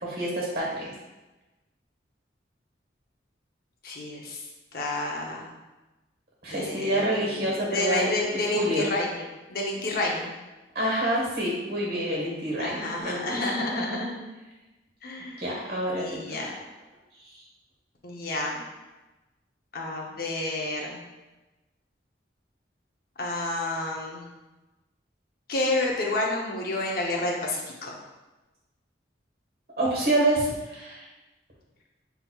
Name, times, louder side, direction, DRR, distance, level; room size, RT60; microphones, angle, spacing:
voice 1, 0.0-0.9 6.4-8.8 10.7-12.8 13.0-13.5 13.9-14.0 15.4-16.0 29.8-31.1, right 1 dB, 55° right, -3 dB, 1.4 m, -27 dB
voice 2, 3.8-4.4 4.7-5.5 6.5-10.3 12.6-14.2 15.0-15.5 16.0-16.5 18.0-18.6 19.7-21.0 23.2-24.3 25.5-28.0, left 2 dB, 50° left, -1 dB, 0.8 m, -30 dB
5.8 x 3.5 x 2.3 m, 1.1 s
head